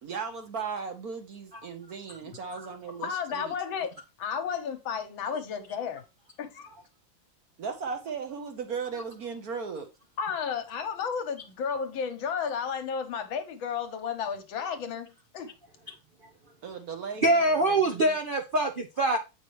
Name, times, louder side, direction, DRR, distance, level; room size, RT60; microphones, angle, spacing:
voice 1, 0.0-3.6 7.6-9.9 16.6-18.2, right 5 dB, 55° right, 1.2 m, -37 dB
voice 2, 3.0-3.9 4.2-6.0 6.4-6.7 10.2-15.5, left 6 dB, 75° left, 1.7 m, -33 dB
voice 3, 17.2-19.2, right 2 dB, 75° right, 0.4 m, -24 dB
8.0 x 5.2 x 3.1 m
omnidirectional pair, 2.2 m